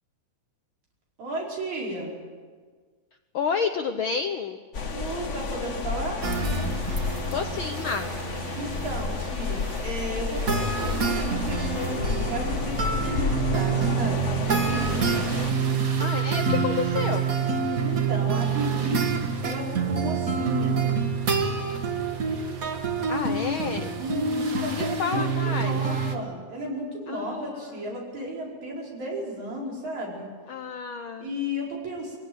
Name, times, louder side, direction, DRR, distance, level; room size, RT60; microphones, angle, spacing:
voice 1, 1.2-2.1 4.9-6.2 8.5-15.1 17.8-20.8 24.0-30.3 31.2-32.2, equal, 70° right, -2 dB, 6.5 m, -33 dB
voice 2, 3.3-4.6 7.3-8.1 16.0-17.3 23.1-23.9 24.7-25.8 27.1-27.9 30.5-31.3, left 6 dB, 70° left, 6 dB, 1.2 m, -30 dB
sound 1, 4.7-15.5, left 4 dB, 55° left, 0.8 m, -31 dB
sound 2, 6.2-26.1, right 5 dB, 40° right, 1.3 m, -27 dB
23.0 x 16.5 x 9.6 m, 1.6 s
omnidirectional pair, 3.4 m